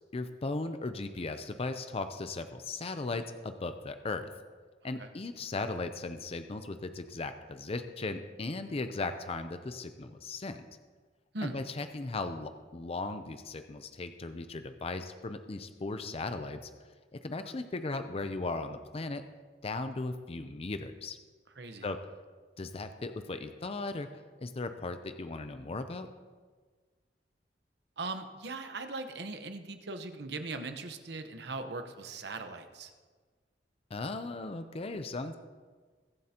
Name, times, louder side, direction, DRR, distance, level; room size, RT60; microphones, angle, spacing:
voice 1, 0.1-4.3 4.8-10.6 11.4-16.7 17.1-19.2 19.6-21.2 21.8-22.0 22.6-24.1 24.4-26.1 33.9-35.4, left 3 dB, 35° left, 8 dB, 0.5 m, -37 dB
voice 2, 21.5-21.9 28.0-32.9, right 3 dB, 70° right, 7 dB, 1.0 m, -40 dB
22.5 x 7.7 x 2.9 m, 1.5 s
head